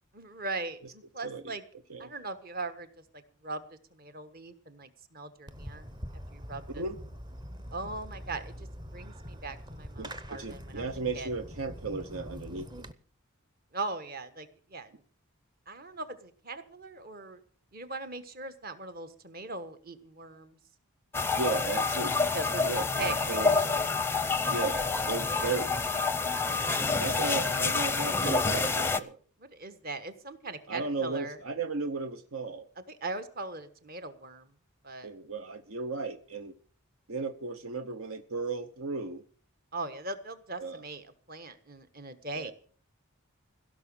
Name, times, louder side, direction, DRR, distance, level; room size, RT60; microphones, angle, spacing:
voice 1, 0.1-1.6 2.0-2.9 3.1-5.9 6.3-6.8 7.7-10.9 11.1-11.3 13.7-15.0 15.7-17.4 17.7-20.6 22.3-23.8 26.3-26.8 29.4-31.4 32.9-34.5 34.8-35.1 39.7-42.5, right 3 dB, 40° right, 10 dB, 1.4 m, -40 dB
voice 2, 1.2-1.5 1.9-2.1 6.7-7.0 10.0-12.7 21.4-22.2 22.6-23.7 24.5-25.9 27.0-29.2 30.7-32.7 35.0-36.5 37.1-39.2 40.6-40.8 42.3-42.5, right 4 dB, 75° right, 10 dB, 0.9 m, -35 dB
Fireworks, 5.5-12.9, equal, 20° right, 0.8 m, -44 dB
sound 1, 21.1-29.0, left 4 dB, 10° left, 0.6 m, -28 dB
16.5 x 6.2 x 8.8 m, 0.44 s
head